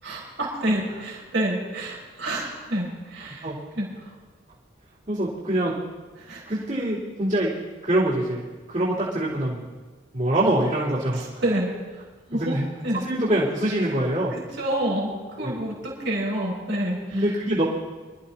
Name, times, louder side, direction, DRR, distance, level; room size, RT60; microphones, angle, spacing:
voice 1, 0.0-3.5 3.7-4.1 6.2-6.6 11.1-12.0 12.3-12.6 12.8-13.0 14.3-17.3, right 1 dB, 90° right, -4 dB, 4.7 m, -28 dB
voice 2, 5.1-5.7 6.4-7.5 7.8-8.4 8.7-9.6 10.1-11.4 12.4-12.6 13.0-14.3 15.4-15.5 17.1-17.6, right 1 dB, 45° right, -8 dB, 3.3 m, -24 dB
25.5 x 13.5 x 2.9 m, 1.3 s
head